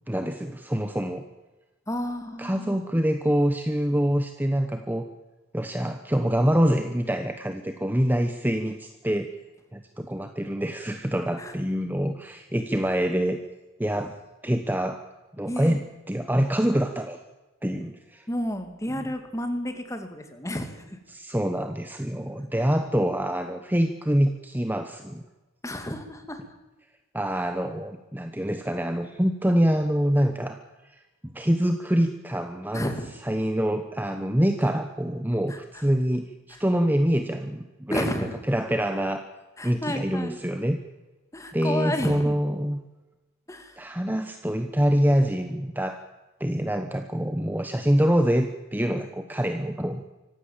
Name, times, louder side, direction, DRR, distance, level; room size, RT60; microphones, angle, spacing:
voice 1, 0.1-1.3 2.4-5.1 5.5-9.3 9.7-13.4 13.8-14.1 14.4-15.0 15.4-15.8 16.1-17.2 17.6-18.3 18.9-19.0 21.1-25.2 27.1-30.6 31.2-32.9 33.2-39.2 39.6-40.8 41.5-42.8 43.8-46.0 46.4-50.0, equal, 10° right, 7 dB, 1.0 m, -25 dB
voice 2, 1.9-2.8 11.4-11.5 14.0-14.1 15.5-15.8 18.3-21.0 25.6-26.4 32.7-33.1 35.5-35.8 36.5-36.6 37.9-38.3 39.6-40.4 41.3-42.4 43.5-43.8, left 1 dB, 15° left, 7 dB, 2.3 m, -31 dB
25.5 x 15.5 x 7.4 m, 1.1 s
head